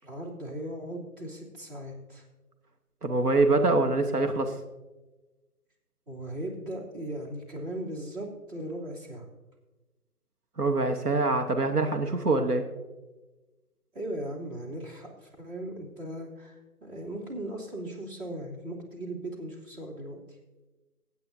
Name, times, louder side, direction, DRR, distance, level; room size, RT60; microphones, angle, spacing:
voice 1, 0.0-2.2 6.1-9.3 13.9-20.2, right 1 dB, 35° right, -2 dB, 3.0 m, -38 dB
voice 2, 3.0-4.5 10.6-12.6, right 3 dB, 85° right, 5 dB, 1.3 m, -24 dB
22.5 x 8.9 x 2.7 m, 1.1 s
figure-of-eight pair, 145°, 45 cm